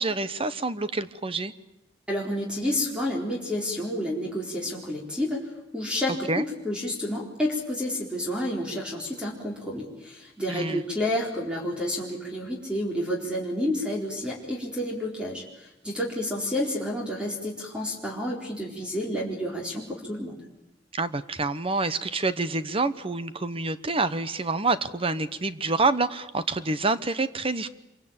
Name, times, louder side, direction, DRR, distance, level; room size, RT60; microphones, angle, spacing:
voice 1, 0.0-1.5 6.3-6.4 10.5-10.8 20.9-27.7, right 3 dB, 30° right, 13 dB, 1.0 m, -27 dB
voice 2, 2.1-20.4, left 1 dB, 5° right, -2 dB, 4.2 m, -30 dB
27.0 x 24.0 x 8.9 m, 0.90 s
head